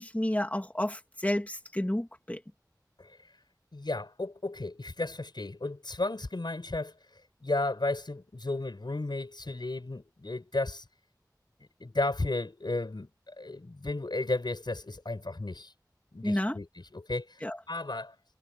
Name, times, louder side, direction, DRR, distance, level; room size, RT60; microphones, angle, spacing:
voice 1, 0.0-2.4 16.2-16.6 17.4-17.6, left 1 dB, 20° left, 2.4 m, -30 dB
voice 2, 3.7-6.9 7.4-10.8 11.8-15.7 16.1-16.7 16.9-17.4 17.7-18.1, left 2 dB, 85° left, 6.1 m, -33 dB
wide cardioid pair, 45°, 7 cm